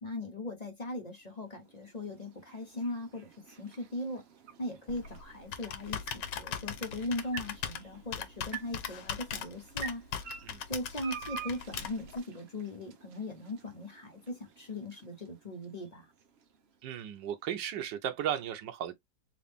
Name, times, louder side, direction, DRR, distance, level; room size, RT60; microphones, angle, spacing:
voice 1, 0.0-4.2 4.6-10.0 10.7-16.1, left 1 dB, 30° left, 0.9 m, -39 dB
sound 1, 1.0-17.2, right 7 dB, 60° right, 0.7 m, -50 dB
Computer keyboard, 4.9-12.2, left 8 dB, 90° left, 1.4 m, -40 dB
voice 2, 16.8-18.9, right 10 dB, 90° right, 1.4 m, -35 dB
3.9 x 2.5 x 3.5 m
omnidirectional pair, 1.9 m